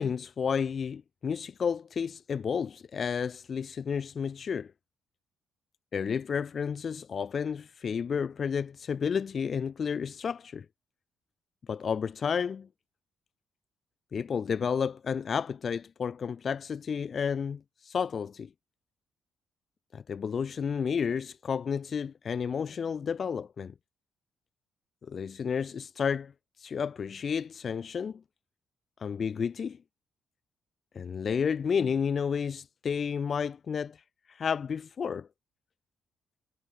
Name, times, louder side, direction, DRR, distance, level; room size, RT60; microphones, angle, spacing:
voice 1, 0.0-4.7 5.9-10.7 11.7-12.7 14.1-18.5 19.9-23.7 25.0-26.3 26.6-28.2 29.0-29.8 30.9-34.0 34.3-35.3, left 6 dB, 45° left, 0.4 m, -31 dB
cardioid pair, 90°, 0 cm